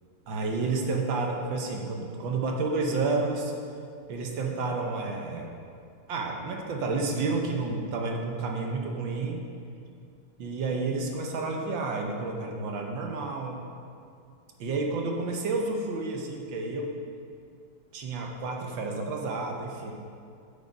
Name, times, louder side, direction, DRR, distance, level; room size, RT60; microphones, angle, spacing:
voice 1, 0.3-3.5 4.1-5.5 6.1-9.4 10.4-13.6 14.6-17.0 17.9-19.9, right 3 dB, 65° right, 1 dB, 1.5 m, -30 dB
8.2 x 7.1 x 5.2 m, 2.4 s
omnidirectional pair, 2.4 m